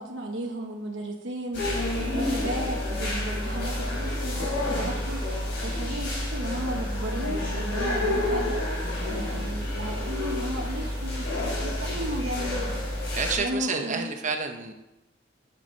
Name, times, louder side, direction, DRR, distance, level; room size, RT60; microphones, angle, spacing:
voice 1, 0.0-8.6 9.1-12.8 13.4-14.1, right 1 dB, 85° right, 1 dB, 1.1 m, -35 dB
sound 1, 1.5-13.3, left 1 dB, 70° left, 3.8 m, -29 dB
voice 2, 13.1-14.9, right 4 dB, 40° right, 5 dB, 0.9 m, -30 dB
8.0 x 7.1 x 5.6 m, 0.96 s
head